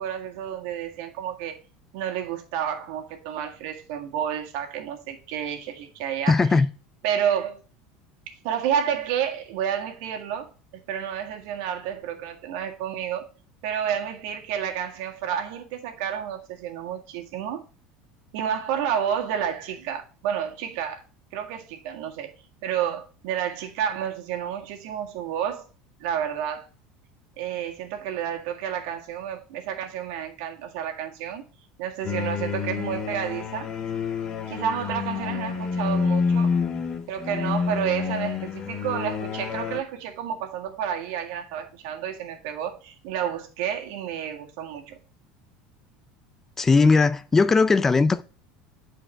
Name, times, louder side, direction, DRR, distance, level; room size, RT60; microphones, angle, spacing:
voice 1, 0.0-1.6 1.9-6.6 7.0-7.6 8.4-13.3 13.6-17.6 18.3-21.0 21.3-22.3 22.6-25.6 26.0-26.7 27.4-31.4 31.8-33.7 34.5-36.6 37.1-45.0, right 9 dB, 70° right, 1.8 m, -30 dB
voice 2, 6.3-6.7 46.6-48.2, left 4 dB, 15° left, 0.4 m, -18 dB
sound 1, 32.0-39.8, left 5 dB, 30° left, 1.1 m, -28 dB
8.7 x 4.6 x 4.4 m
cardioid pair, 150°, 2 cm